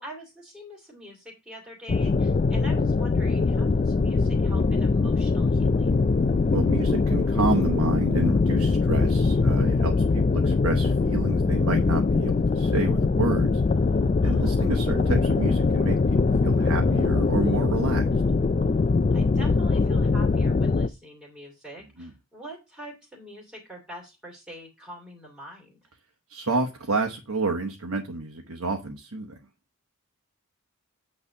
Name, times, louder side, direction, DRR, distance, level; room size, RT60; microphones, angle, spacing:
voice 1, 0.0-6.0 10.1-10.2 14.2-14.6 19.1-25.9, equal, 5° right, -4 dB, 2.3 m, -44 dB
sound 1, 1.9-20.9, left 4 dB, 30° left, 0.3 m, -22 dB
voice 2, 6.5-13.6 14.2-18.1 22.0-22.1 26.3-29.4, right 3 dB, 75° right, 3 dB, 1.1 m, -29 dB
8.4 x 3.3 x 6.6 m, 0.26 s
head